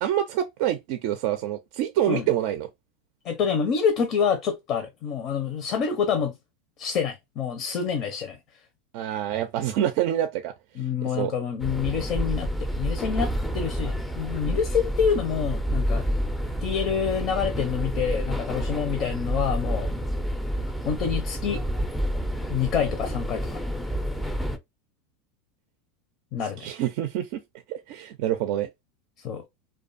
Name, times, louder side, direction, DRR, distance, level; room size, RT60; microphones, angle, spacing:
voice 1, 0.0-2.7 8.9-10.5 11.1-11.3 26.6-27.4 27.7-28.7, right 11 dB, 60° right, 0.4 m, -26 dB
voice 2, 3.2-6.3 6.8-8.4 10.7-16.1 16.6-19.9 20.8-21.6 22.5-23.6 26.3-26.7 29.2-29.4, left 7 dB, 50° left, 0.6 m, -27 dB
sound 1, 11.6-24.6, equal, 5° left, 0.4 m, -29 dB
2.4 x 2.3 x 2.5 m
hypercardioid pair, 105°, 0 cm